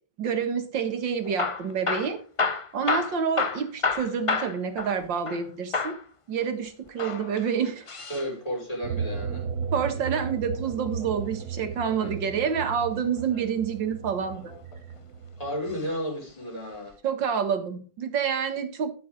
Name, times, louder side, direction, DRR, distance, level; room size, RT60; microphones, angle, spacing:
voice 1, 0.2-2.2 2.7-6.0 6.3-7.9 9.7-14.5 17.0-18.9, right 7 dB, 90° right, 8 dB, 2.4 m, -28 dB
Hammer / Drill, 1.2-5.5 5.7-6.0 6.9-8.3 10.0-11.3 13.0-13.4 14.2-15.0 15.7-15.9 16.2-16.3 16.9-17.0, left 4 dB, 55° left, 0.3 m, -30 dB
voice 2, 8.1-9.5 12.0-12.2 15.4-16.9, equal, 20° left, -2 dB, 5.3 m, -33 dB
sound 1, 8.8-15.8, right 6 dB, 60° right, 1.2 m, -35 dB
13.0 x 8.6 x 3.9 m, 0.37 s
omnidirectional pair, 1.9 m